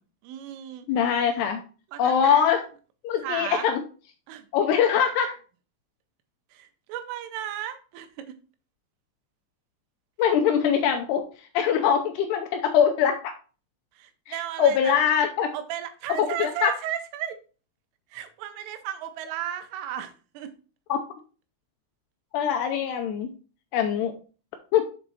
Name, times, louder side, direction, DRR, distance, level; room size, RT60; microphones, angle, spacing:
voice 1, 0.2-0.9 1.9-2.4 3.2-3.7 4.3-4.5 6.5-8.3 13.9-15.0 15.5-17.4 18.1-20.5, right 11 dB, 90° right, 8 dB, 3.4 m, -34 dB
voice 2, 0.9-1.6 2.0-2.6 3.0-3.8 4.5-5.4 10.2-13.2 14.3-15.5 16.2-16.7 20.9-21.0 22.3-23.3 23.7-24.1 24.7-24.9, left 8 dB, 90° left, 4 dB, 2.3 m, -23 dB
7.2 x 4.5 x 4.0 m, 0.37 s
omnidirectional pair, 5.5 m